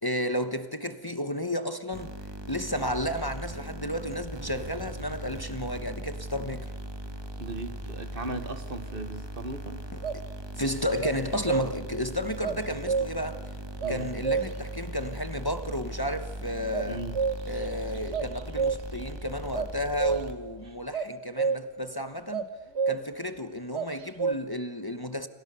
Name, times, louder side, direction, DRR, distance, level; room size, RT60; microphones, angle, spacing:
voice 1, 0.0-2.2 2.5-6.7 10.5-13.4 13.9-17.0 17.5-22.5 22.9-25.3, left 1 dB, 20° left, 1.2 m, -32 dB
sound 1, 1.9-20.7, right 1 dB, 25° right, 1.7 m, -39 dB
voice 2, 7.4-9.9 13.8-14.1 16.8-17.2 20.6-20.8, right 2 dB, 55° right, 1.6 m, -37 dB
sound 2, 10.0-10.3 11.0-12.0 12.4-13.4 13.8-14.7 16.7-17.7 18.0-19.1 19.5-20.5 20.9-21.8 22.3-23.3 23.7-24.3, right 5 dB, 80° right, 1.5 m, -30 dB
29.0 x 26.5 x 7.0 m
omnidirectional pair, 1.1 m